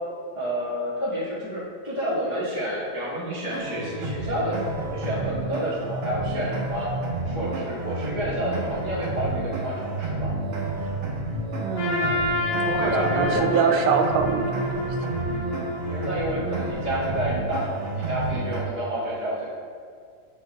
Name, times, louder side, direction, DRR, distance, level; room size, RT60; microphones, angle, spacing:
voice 1, 0.3-6.9 7.2-10.3 12.8-13.8 15.8-19.4, equal, 40° left, -11 dB, 0.6 m, -29 dB
sound 1, 3.5-18.6, right 2 dB, 55° right, 1.5 m, -30 dB
voice 2, 11.6-15.0, right 6 dB, 90° right, 4 dB, 2.2 m, -25 dB
Trumpet, 11.8-16.9, left 1 dB, 65° left, 1.9 m, -29 dB
6.9 x 6.8 x 2.3 m, 2.1 s
omnidirectional pair, 3.7 m